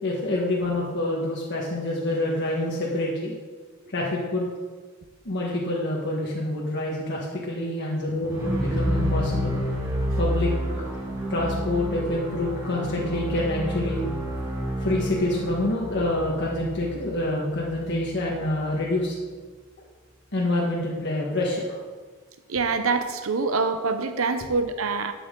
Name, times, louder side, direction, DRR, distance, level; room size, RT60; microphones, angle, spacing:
voice 1, 0.0-3.3 3.9-4.5 5.2-9.6 10.2-10.5 11.3-14.0 14.8-19.1 20.3-21.8, left 1 dB, 60° left, -4 dB, 1.5 m, -27 dB
sound 1, 8.2-18.3, equal, 15° right, 3.0 m, -29 dB
voice 2, 22.5-25.1, right 4 dB, 90° right, 8 dB, 0.8 m, -25 dB
12.5 x 8.6 x 3.8 m, 1.4 s
head